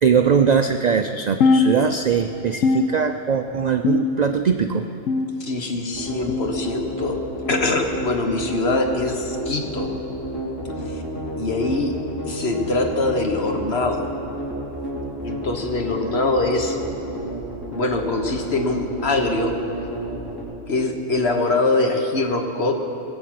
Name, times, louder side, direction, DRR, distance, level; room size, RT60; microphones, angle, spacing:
voice 1, 0.0-4.9, right 6 dB, 60° right, 7 dB, 0.4 m, -20 dB
sound 1, 1.4-2.3 2.6-3.4 3.8-4.5 5.1-5.7 6.3-6.7 7.5-7.7 8.7-8.9 9.9-10.2 11.2-11.4 12.4-12.6 13.6-13.8 14.8-14.9 16.1-16.2, left 4 dB, 85° left, 1.1 m, -23 dB
voice 2, 5.4-7.2 7.5-9.9 10.8-11.0 11.4-11.9 12.2-14.1 15.2-16.8 17.7-19.6 20.7-22.7, left 2 dB, 55° left, 4 dB, 1.5 m, -23 dB
sound 2, 5.9-20.4, equal, 15° left, 3.4 m, -31 dB
20.0 x 8.0 x 7.7 m, 2.9 s
omnidirectional pair, 1.3 m